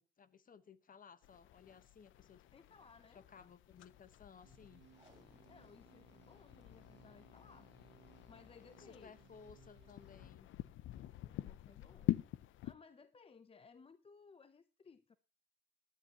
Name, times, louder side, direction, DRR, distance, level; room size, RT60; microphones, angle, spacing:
voice 1, 0.0-2.4 3.1-4.8 8.8-10.5, left 6 dB, 45° left, 1.1 m, -59 dB
sound 1, 1.2-12.7, left 14 dB, 80° left, 0.6 m, -46 dB
voice 2, 2.5-3.2 5.5-7.7 8.0-9.3 11.1-12.2 12.6-15.2, left 5 dB, 30° left, 0.6 m, -61 dB
sound 2, 4.4-10.3, right 10 dB, 65° right, 1.5 m, -66 dB
Packing tape duct tape, 4.9-6.0 6.3-6.4 6.6-6.7 7.3-7.6 8.6-8.8 9.4-9.5, right 2 dB, 20° right, 3.9 m, -69 dB
18.0 x 10.5 x 2.9 m
cardioid pair, 90°, 20 cm